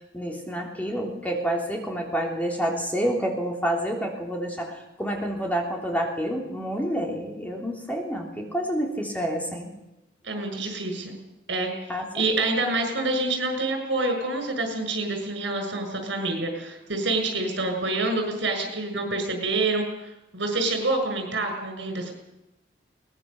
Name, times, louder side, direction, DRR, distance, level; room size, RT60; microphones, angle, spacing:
voice 1, 0.1-9.7 11.9-12.0, equal, 10° left, 0 dB, 3.4 m, -28 dB
voice 2, 10.2-11.2 11.5-11.7 12.1-19.8 20.3-22.1, right 2 dB, 80° right, 5 dB, 6.7 m, -27 dB
22.5 x 20.0 x 7.1 m, 0.95 s
head